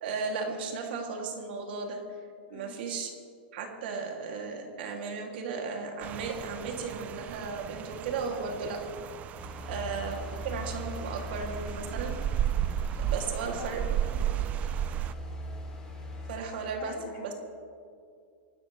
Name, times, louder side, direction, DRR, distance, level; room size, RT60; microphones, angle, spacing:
voice 1, 0.0-2.0 2.5-3.1 3.5-8.8 9.7-12.1 13.1-13.8 16.3-17.3, right 4 dB, 65° right, 2 dB, 2.6 m, -35 dB
Rain, 6.0-15.1, right 11 dB, 25° right, 0.3 m, -34 dB
sound 1, 9.4-16.4, left 1 dB, 10° left, 2.7 m, -41 dB
voice 2, 13.5-14.7 16.8-17.3, left 4 dB, 40° left, -1 dB, 3.4 m, -47 dB
26.0 x 12.5 x 3.3 m, 2.4 s
supercardioid pair, 145°, 6 cm